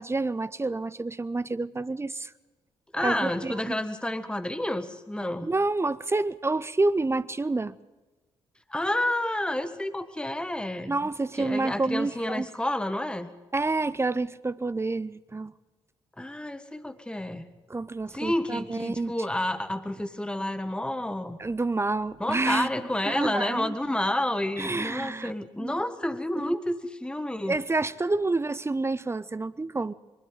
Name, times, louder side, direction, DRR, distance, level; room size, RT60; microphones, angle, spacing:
voice 1, 0.0-2.3 3.0-3.8 5.4-7.8 10.9-12.5 13.5-15.5 17.7-19.1 21.4-22.7 23.0-23.7 24.6-25.3 25.6-25.8 26.4-26.5 27.4-29.9, right 3 dB, 20° right, 18 dB, 0.7 m, -28 dB
voice 2, 2.9-5.5 8.7-11.0 11.4-13.3 16.2-17.5 18.1-21.4 22.2-27.6, left 1 dB, 5° left, 10 dB, 1.5 m, -30 dB
22.5 x 12.5 x 9.3 m, 1.2 s
figure-of-eight pair, 40°, 14 cm